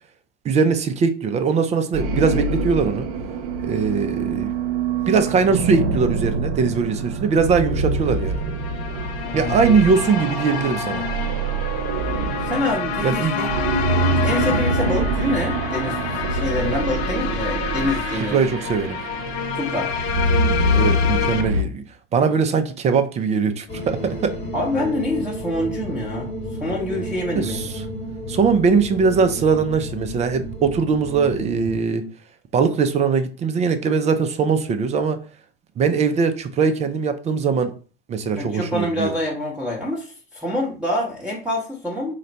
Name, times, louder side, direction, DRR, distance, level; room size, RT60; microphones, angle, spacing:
voice 1, 0.4-3.1 3.6-4.5 5.1-8.4 9.3-11.1 13.0-13.3 14.5-14.6 18.3-19.0 20.7-21.8 22.1-24.4 27.4-27.8 28.3-32.0 32.5-35.2 35.8-37.7 38.1-39.1, right 5 dB, 20° right, 0.4 m, -21 dB
sound 1, 1.9-21.6, right 3 dB, 60° right, 0.7 m, -25 dB
sound 2, 8.0-21.4, left 9 dB, 90° left, 0.5 m, -29 dB
voice 2, 9.2-9.6 12.4-13.5 14.0-18.4 19.5-19.9 24.5-26.3 26.6-27.7 38.4-42.1, left 1 dB, 5° right, 0.9 m, -26 dB
sound 3, 23.7-31.8, equal, 20° left, 1.1 m, -32 dB
4.0 x 2.2 x 3.9 m
hypercardioid pair, 105°, 31 cm